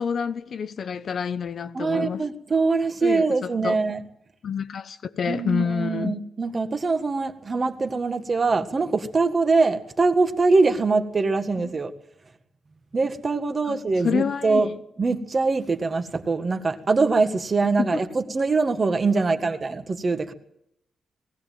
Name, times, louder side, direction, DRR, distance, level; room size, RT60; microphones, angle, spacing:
voice 1, 0.0-2.3 3.0-3.8 4.4-6.2 13.7-13.8 14.0-14.8 17.8-18.0 19.2-19.4, left 6 dB, 50° left, 0.9 m, -28 dB
voice 2, 1.7-4.0 5.3-11.9 12.9-14.7 15.0-20.3, right 3 dB, 30° right, 1.7 m, -23 dB
19.0 x 16.5 x 9.2 m
cardioid pair, 135°, 0 cm